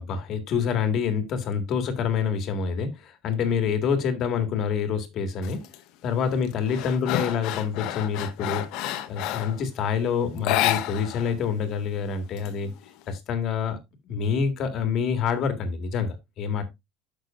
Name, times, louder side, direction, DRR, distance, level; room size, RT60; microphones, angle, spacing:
voice 1, 0.0-5.6 6.0-8.7 9.1-12.7 13.1-13.8 14.1-16.6, left 6 dB, 45° left, 1.8 m, -27 dB
sound 1, 5.4-5.8 6.2-9.6 10.4-11.3 11.6-11.7 12.1-13.0, left 12 dB, 60° left, 1.0 m, -29 dB
10.5 x 6.1 x 2.5 m
cardioid pair, 145°, 0 cm